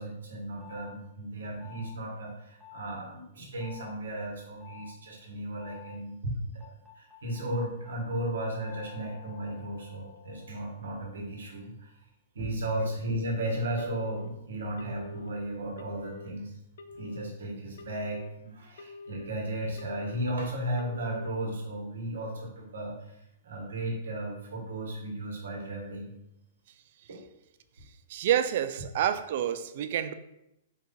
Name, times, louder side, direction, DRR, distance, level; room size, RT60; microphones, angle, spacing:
voice 1, 0.0-6.6 7.0-11.9 12.3-16.5 17.0-22.9 23.4-26.1 27.1-27.2, right 1 dB, 90° right, 1.4 m, -35 dB
sound 1, 0.6-1.0 1.6-2.0 2.6-3.0 3.6-3.9 4.6-5.0 5.6-6.0 6.6-11.7, left 11 dB, ahead, 0.8 m, -51 dB
Telephone, 13.8-14.3 14.8-15.3 15.8-16.3 16.8-17.3 17.8-18.3 18.8-19.3 19.8-20.3 20.8-21.3, left 3 dB, 75° left, 0.4 m, -45 dB
voice 2, 28.1-30.1, right 10 dB, 55° right, 0.3 m, -28 dB
4.6 x 2.6 x 3.8 m
hypercardioid pair, 145°, 0 cm